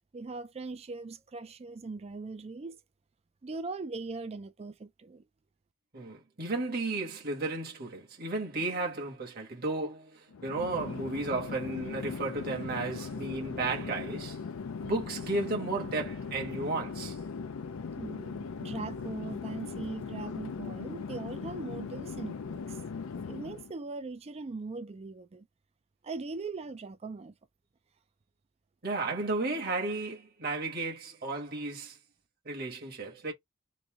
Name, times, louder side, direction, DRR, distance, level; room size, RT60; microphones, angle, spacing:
voice 1, 0.1-2.8 3.4-5.3 18.0-22.8 23.3-25.5 26.0-27.3, right 3 dB, 30° right, 0.4 m, -40 dB
voice 2, 5.9-14.4 14.8-17.2 28.8-32.0 32.4-33.3, right 3 dB, 45° right, 1.2 m, -34 dB
Chatter / Fixed-wing aircraft airplane, 10.3-23.7, left 5 dB, 70° left, 0.4 m, -39 dB
3.1 x 2.6 x 3.4 m
head